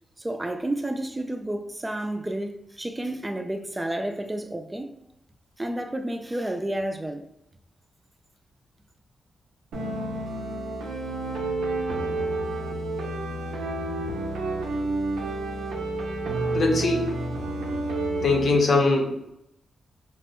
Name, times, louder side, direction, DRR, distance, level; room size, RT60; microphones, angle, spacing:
voice 1, 0.2-4.9 5.6-7.3, right 1 dB, 20° right, 0.3 m, -31 dB
sound 1, 9.7-18.5, right 2 dB, 85° right, 0.4 m, -29 dB
voice 2, 16.5-17.1 18.2-19.1, left 3 dB, 65° left, 0.7 m, -21 dB
3.2 x 2.1 x 2.9 m
supercardioid pair, 50°, 0 cm